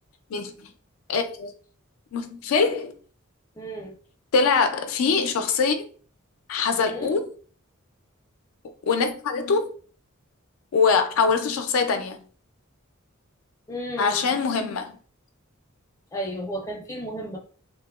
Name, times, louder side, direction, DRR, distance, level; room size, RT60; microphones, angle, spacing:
voice 1, 0.3-0.7 1.1-1.5 2.1-2.9 4.3-5.8 6.5-7.2 8.8-9.7 10.7-12.2 14.0-14.9, left 5 dB, 80° left, 0.4 m, -23 dB
voice 2, 3.6-3.9 6.8-7.1 13.7-14.3 16.1-17.4, equal, 15° left, 0.4 m, -33 dB
2.8 x 2.1 x 2.2 m
head